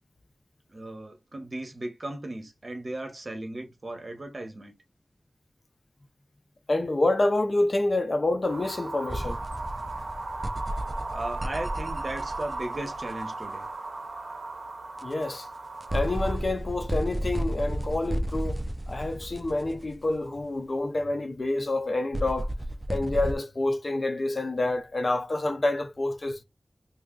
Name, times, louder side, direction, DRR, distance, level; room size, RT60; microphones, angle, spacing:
voice 1, 0.7-4.7 11.1-13.7, right 1 dB, 50° right, 1.0 m, -36 dB
voice 2, 6.7-9.4 15.0-15.5 15.9-22.5 22.9-26.4, left 2 dB, 55° left, 0.6 m, -28 dB
sound 1, 8.4-16.4, right 3 dB, 85° right, 0.5 m, -37 dB
sound 2, 9.1-13.2 15.0-15.1 15.8-20.3 22.1-23.4, right 1 dB, 20° right, 0.4 m, -32 dB
2.7 x 2.3 x 3.7 m
wide cardioid pair, 70°, 0 cm